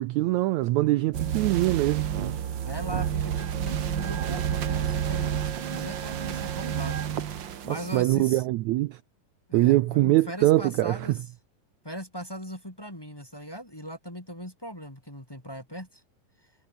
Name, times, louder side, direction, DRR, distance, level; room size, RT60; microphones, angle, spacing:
voice 1, 0.0-2.1 7.7-9.0 9.5-11.0, right 17 dB, 80° right, 1.6 m, -23 dB
sound 1, 1.1-8.0, right 9 dB, 65° right, 1.1 m, -30 dB
voice 2, 2.6-7.3 7.6-8.4 9.5-11.2 11.8-16.0, equal, 5° left, 2.7 m, -39 dB
omnidirectional pair, 4.0 m